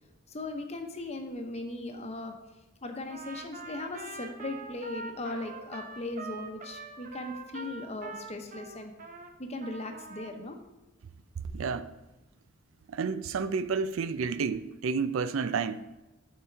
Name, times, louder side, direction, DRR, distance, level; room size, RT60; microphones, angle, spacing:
voice 1, 0.3-2.4 2.8-8.9 9.4-10.6, left 2 dB, 30° left, 0.9 m, -38 dB
Trumpet, 3.1-9.3 9.6-10.4, right 3 dB, 40° right, 0.7 m, -44 dB
voice 2, 11.5-11.9 12.9-15.8, right 5 dB, 70° right, 0.4 m, -30 dB
11.0 x 4.4 x 4.5 m
head